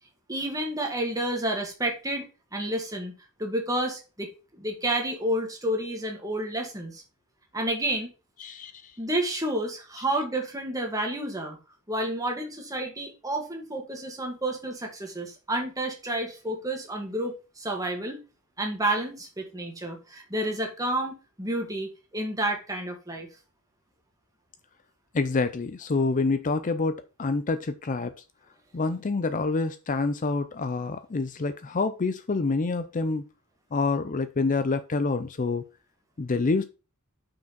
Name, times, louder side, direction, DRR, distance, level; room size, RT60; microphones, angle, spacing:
voice 1, 0.3-3.1 3.4-7.0 7.5-8.1 9.0-11.6 11.9-18.2 18.6-23.3, right 1 dB, 15° right, 1.8 m, -30 dB
voice 2, 8.4-8.9 25.1-28.1 28.7-33.3 33.7-35.6 36.2-36.6, left 3 dB, 35° left, 0.5 m, -27 dB
5.9 x 4.9 x 5.9 m
head